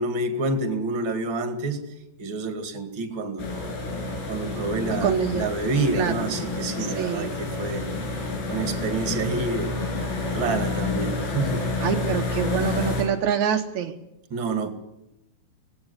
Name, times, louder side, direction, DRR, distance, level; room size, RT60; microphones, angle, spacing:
voice 1, 0.0-1.8 2.2-3.5 4.3-7.9 8.5-9.7 10.3-11.7 14.3-14.7, right 3 dB, 35° right, 8 dB, 2.2 m, -28 dB
sound 1, 3.4-13.0, left 3 dB, 75° left, 7.4 m, -29 dB
voice 2, 4.9-5.5 5.9-6.1 6.8-7.3 11.8-13.9, right 8 dB, 80° right, 5 dB, 1.6 m, -25 dB
19.0 x 17.0 x 9.8 m, 0.89 s
omnidirectional pair, 4.9 m